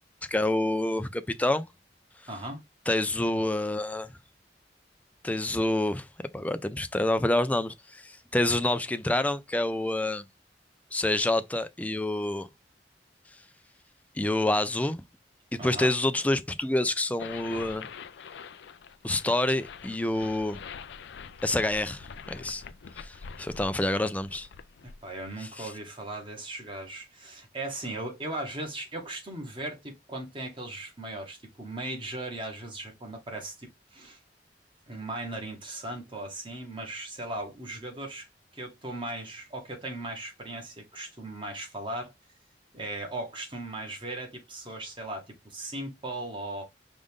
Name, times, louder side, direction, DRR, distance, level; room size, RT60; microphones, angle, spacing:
voice 1, 0.3-1.7 2.9-4.1 5.2-6.1 6.3-10.2 10.9-12.5 14.2-15.0 15.5-17.9 19.0-20.6 21.4-22.6 23.0-24.5 25.6-25.7, left 1 dB, 10° left, 0.3 m, -27 dB
voice 2, 2.3-2.6 15.6-15.9 24.8-34.2 34.9-42.1 42.7-46.6, right 1 dB, 30° right, 1.3 m, -38 dB
sound 1, 17.2-25.3, left 6 dB, 85° left, 0.4 m, -45 dB
5.1 x 2.5 x 3.5 m
head